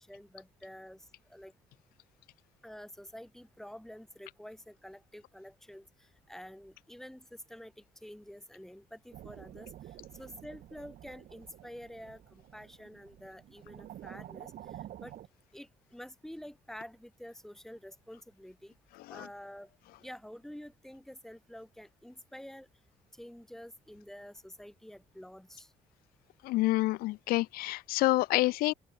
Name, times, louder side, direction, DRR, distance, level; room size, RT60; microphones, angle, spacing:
voice 1, 0.0-1.5 2.6-14.5 15.0-15.1 15.5-18.7 19.1-19.7 20.0-22.7 23.1-25.7, equal, 5° left, 3.2 m, -49 dB
sound 1, 9.1-15.3, right 12 dB, 70° right, 6.3 m, -49 dB
voice 2, 26.4-28.7, left 19 dB, 90° left, 0.8 m, -28 dB
open air
cardioid pair, 95°, 15 cm